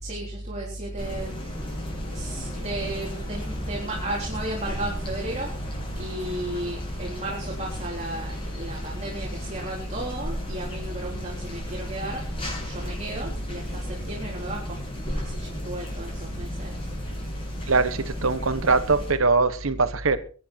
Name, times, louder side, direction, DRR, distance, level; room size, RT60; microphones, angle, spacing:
voice 1, 0.0-1.4 2.1-5.5 6.0-12.2 12.6-14.8 15.2-16.8, right 1 dB, 35° right, 4.0 m, -33 dB
sound 1, 1.0-19.1, equal, 25° left, 7.5 m, -35 dB
voice 2, 17.7-20.2, right 3 dB, 75° right, 1.2 m, -22 dB
22.5 x 9.7 x 4.5 m
head